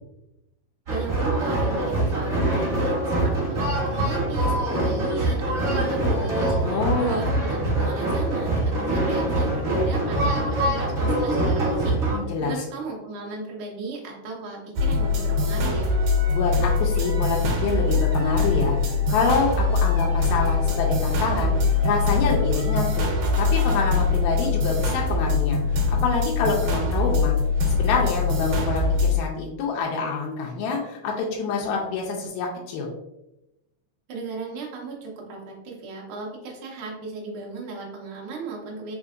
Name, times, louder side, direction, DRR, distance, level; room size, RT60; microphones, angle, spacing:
sound 1, 0.9-12.2, right 1 dB, 45° right, 1.1 m, -24 dB
voice 1, 0.9-12.0 12.4-15.9 34.1-38.9, right 3 dB, 60° right, -2 dB, 1.5 m, -36 dB
voice 2, 6.6-7.2 12.1-12.6 16.3-18.8 19.1-23.1 23.4-27.3 27.7-32.9, left 4 dB, 80° left, -2 dB, 1.9 m, -26 dB
sound 2, 14.8-29.2, left 4 dB, 75° right, 2.2 m, -22 dB
4.3 x 3.8 x 2.4 m, 0.90 s
omnidirectional pair, 3.4 m